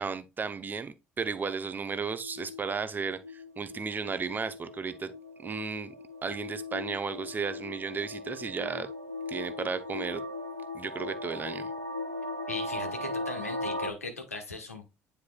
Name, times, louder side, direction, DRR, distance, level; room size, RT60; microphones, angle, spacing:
voice 1, 0.0-5.1 5.4-5.9 6.2-8.9 9.3-10.2 10.7-11.7, right 5 dB, 25° right, 0.8 m, -34 dB
sound 1, 1.9-13.9, left 2 dB, 90° right, 0.5 m, -38 dB
voice 2, 12.5-14.9, left 3 dB, 85° left, 1.3 m, -38 dB
9.5 x 4.8 x 2.3 m
figure-of-eight pair, 55°, 8 cm